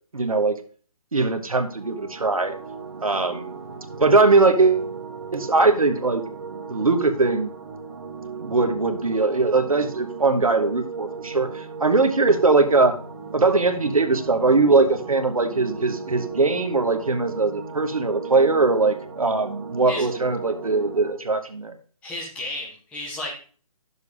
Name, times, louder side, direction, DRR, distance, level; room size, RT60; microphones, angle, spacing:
voice 1, 0.1-0.6 1.1-2.5 3.0-3.5 4.0-4.9 5.3-6.2 6.7-7.5 8.4-12.9 13.3-21.7, right 3 dB, 70° right, 7 dB, 1.0 m, -20 dB
sound 1, 1.7-21.1, right 5 dB, 45° right, 1.0 m, -37 dB
voice 2, 22.0-23.4, left 1 dB, 5° left, -2 dB, 0.9 m, -33 dB
10.5 x 6.8 x 2.5 m, 0.41 s
figure-of-eight pair, 145°, 19 cm